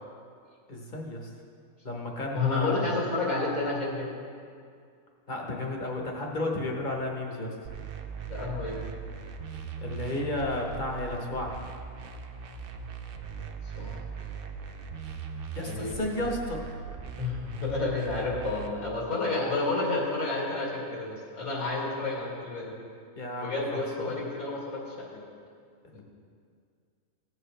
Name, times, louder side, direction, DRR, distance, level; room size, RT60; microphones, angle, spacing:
voice 1, 0.7-1.3 1.8-2.9 5.3-7.5 9.8-11.5 15.5-16.6 23.2-23.6 24.0-24.1, left 1 dB, 35° left, 0 dB, 1.2 m, -32 dB
voice 2, 2.3-4.1 8.3-8.8 13.7-14.0 15.6-16.3 17.2-22.7 23.4-25.2, left 3 dB, 80° left, -5 dB, 2.7 m, -30 dB
sound 1, 7.6-18.7, right 6 dB, 55° right, 0.6 m, -40 dB
15.0 x 7.6 x 3.3 m, 2.2 s
omnidirectional pair, 1.5 m